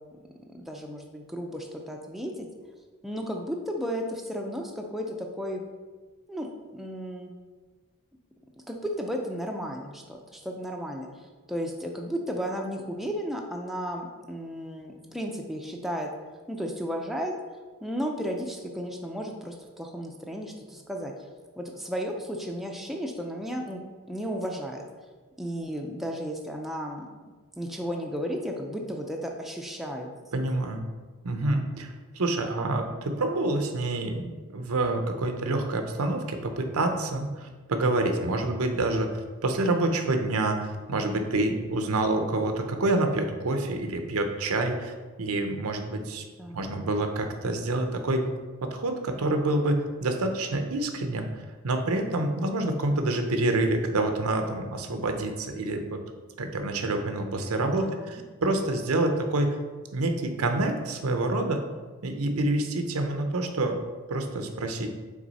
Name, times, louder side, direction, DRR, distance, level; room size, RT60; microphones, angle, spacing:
voice 1, 0.0-2.5 3.0-5.7 6.3-7.3 8.7-16.1 16.5-17.3 17.8-21.1 21.6-24.8 25.4-27.1 27.6-30.1 46.4-46.7 57.8-58.2, equal, ahead, 1 dB, 0.4 m, -34 dB
voice 2, 30.3-30.8 31.2-39.1 39.4-44.9 45.2-46.2 46.5-48.2 48.6-51.3 51.6-56.0 56.4-59.5 59.9-61.6 62.0-63.8 64.1-64.9, right 2 dB, 85° right, 6 dB, 0.7 m, -27 dB
6.0 x 4.0 x 4.1 m, 1.4 s
head